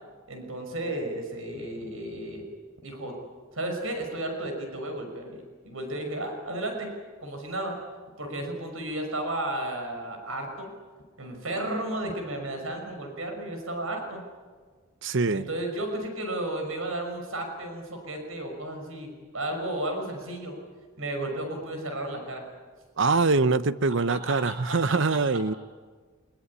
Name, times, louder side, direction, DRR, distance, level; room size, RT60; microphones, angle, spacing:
voice 1, 0.3-2.5 2.8-3.1 3.5-6.9 7.2-7.8 8.2-10.7 11.2-14.2 15.3-20.6 21.0-22.4 24.1-24.8, right 1 dB, 80° right, 4 dB, 5.9 m, -33 dB
voice 2, 15.0-15.5 23.0-25.5, right 3 dB, 60° right, 14 dB, 0.8 m, -24 dB
24.0 x 22.0 x 9.8 m, 1.5 s
head